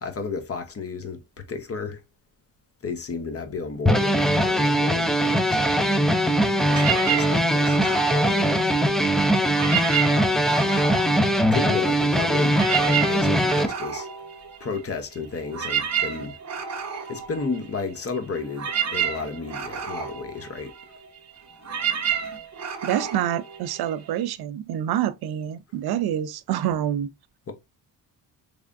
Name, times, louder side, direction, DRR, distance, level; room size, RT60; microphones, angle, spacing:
voice 1, 0.0-2.0 2.8-5.6 6.6-8.6 10.1-10.5 11.5-14.1 14.6-16.4 17.1-20.7, left 4 dB, 35° left, 0.9 m, -33 dB
sound 1, 3.9-13.7, equal, ahead, 0.4 m, -21 dB
sound 2, 6.7-9.1 9.4-12.0 12.3-24.2, right 8 dB, 40° right, 0.9 m, -30 dB
voice 2, 22.8-27.1, right 11 dB, 65° right, 0.5 m, -27 dB
3.5 x 3.3 x 2.5 m
cardioid pair, 95°, 41 cm